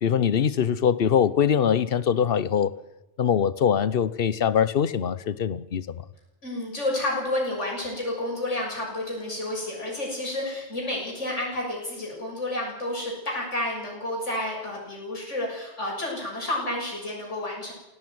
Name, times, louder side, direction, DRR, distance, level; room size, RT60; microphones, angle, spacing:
voice 1, 0.0-2.8 3.2-6.0, left 8 dB, 55° left, 1.0 m, -23 dB
voice 2, 6.4-17.7, left 1 dB, 80° left, 7.2 m, -30 dB
17.5 x 17.0 x 9.4 m
omnidirectional pair, 1.2 m